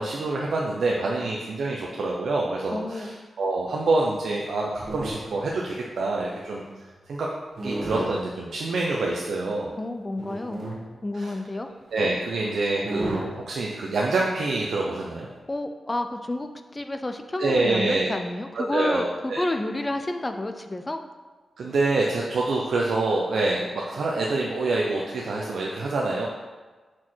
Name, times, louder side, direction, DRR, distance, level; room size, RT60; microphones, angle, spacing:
voice 1, 0.0-6.6 7.1-7.3 7.6-9.7 11.1-11.3 11.9-15.3 17.4-18.1 18.5-19.4 21.6-26.3, right 2 dB, 75° right, -2 dB, 0.7 m, -26 dB
voice 2, 2.7-3.1 9.8-10.7 11.0-11.7 15.5-21.0, left 2 dB, 20° left, 7 dB, 0.5 m, -30 dB
sound 1, 4.4-5.5 6.1-6.9 7.6-8.2 9.1-9.2 10.2-10.8 11.9-12.0 12.3-12.4 12.8-13.3 14.6-14.7, right 1 dB, 40° right, 1.2 m, -32 dB
6.2 x 4.5 x 4.5 m, 1.3 s
wide cardioid pair, 125°, 0 cm